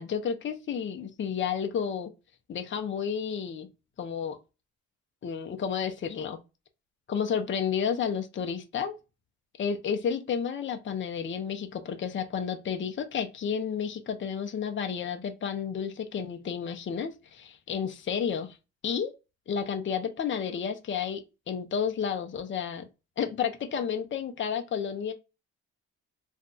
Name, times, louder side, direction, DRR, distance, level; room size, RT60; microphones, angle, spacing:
voice 1, 0.0-2.1 2.5-3.7 4.0-4.4 5.2-6.4 7.1-8.9 9.6-18.6 18.8-19.1 19.5-21.2 21.5-22.9 23.2-25.1, left 7 dB, 40° left, 0.7 m, -31 dB
2.6 x 2.2 x 3.8 m
cardioid pair, 90°, 30 cm